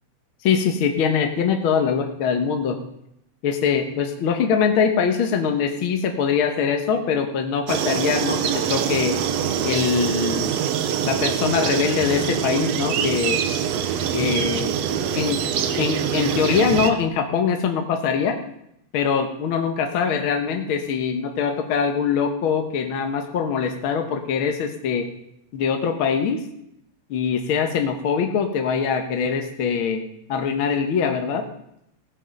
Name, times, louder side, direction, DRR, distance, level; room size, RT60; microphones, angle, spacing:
voice 1, 0.4-2.8 3.4-8.4 8.7-9.2 9.6-10.5 11.0-13.4 14.1-14.7 15.1-15.4 15.8-18.4 18.9-25.1 25.5-26.4 27.1-30.0 30.3-31.4, left 6 dB, 60° left, 5 dB, 1.5 m, -23 dB
sound 1, 7.7-16.9, right 8 dB, 70° right, 1.9 m, -24 dB
16.5 x 8.3 x 5.2 m, 0.78 s
omnidirectional pair, 3.3 m